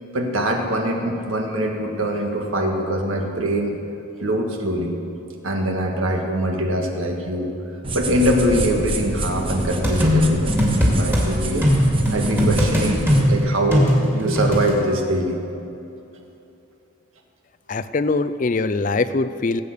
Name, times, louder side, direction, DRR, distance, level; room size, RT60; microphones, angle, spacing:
voice 1, 0.1-3.8 4.2-5.0 5.4-10.5 10.8-11.7 12.1-15.4, right 1 dB, 75° right, 2 dB, 1.8 m, -23 dB
sound 1, 7.8-13.3, right 1 dB, 25° right, 1.0 m, -26 dB
sound 2, 9.8-11.2 11.6-14.7, equal, 10° right, 2.4 m, -19 dB
voice 2, 17.7-19.6, left 3 dB, 40° left, 12 dB, 0.4 m, -22 dB
17.5 x 8.5 x 6.7 m, 2.9 s
head